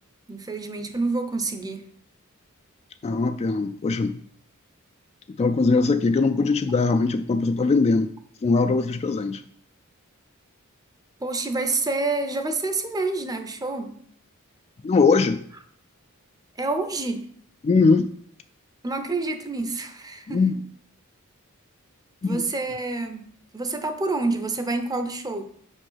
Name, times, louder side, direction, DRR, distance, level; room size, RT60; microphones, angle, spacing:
voice 1, 0.3-1.8 11.2-14.0 16.6-17.3 18.8-20.5 22.2-23.2 23.5-25.4, right 3 dB, 15° right, 0.7 m, -28 dB
voice 2, 3.0-4.2 5.4-8.1 8.4-9.4 14.8-15.4 17.6-18.1 20.3-20.5 22.2-22.4, left 4 dB, 30° left, 0.3 m, -21 dB
5.3 x 5.3 x 5.6 m
head